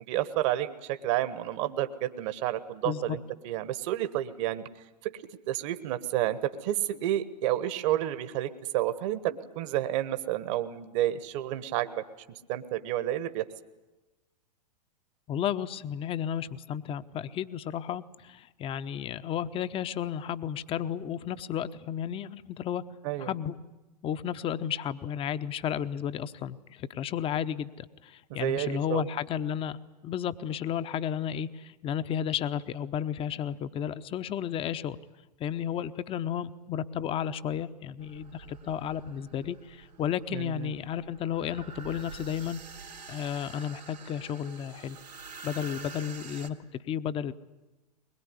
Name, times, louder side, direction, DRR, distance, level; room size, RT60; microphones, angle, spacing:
voice 1, 0.1-4.6 5.0-12.0 12.5-13.4 23.0-23.3 28.3-29.0 40.3-40.7, right 13 dB, 45° right, 11 dB, 1.4 m, -30 dB
voice 2, 15.3-22.8 23.2-23.6 24.0-29.8 30.0-35.0 35.4-42.6 43.1-45.0 45.4-47.3, left 9 dB, 25° left, 13 dB, 0.9 m, -33 dB
sound 1, 38.0-46.5, right 5 dB, 80° right, 3.4 m, -47 dB
22.0 x 21.5 x 9.8 m, 1.1 s
figure-of-eight pair, 100°, 21 cm